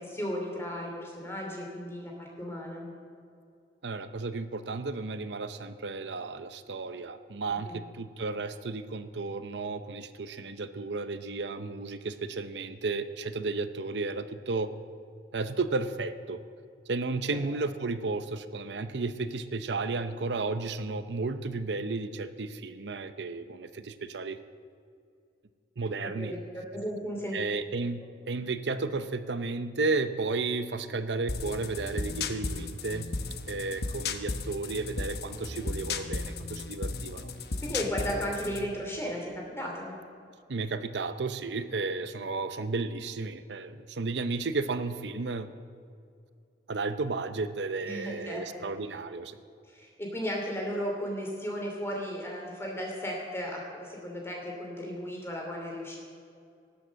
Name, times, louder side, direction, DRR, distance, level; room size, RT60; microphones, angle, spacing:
voice 1, 0.0-2.8 7.6-7.8 17.3-17.4 26.0-27.4 37.6-39.3 39.6-39.9 47.8-48.6 49.7-56.0, equal, 15° left, -1 dB, 2.8 m, -35 dB
voice 2, 3.8-14.7 15.3-16.4 16.9-24.4 25.8-26.3 27.3-33.1 33.5-37.3 40.5-45.5 46.7-49.4, right 3 dB, 85° right, 11 dB, 0.7 m, -33 dB
sound 1, 31.3-38.7, left 3 dB, 65° left, 0.9 m, -35 dB
18.5 x 7.9 x 7.5 m, 2.4 s
head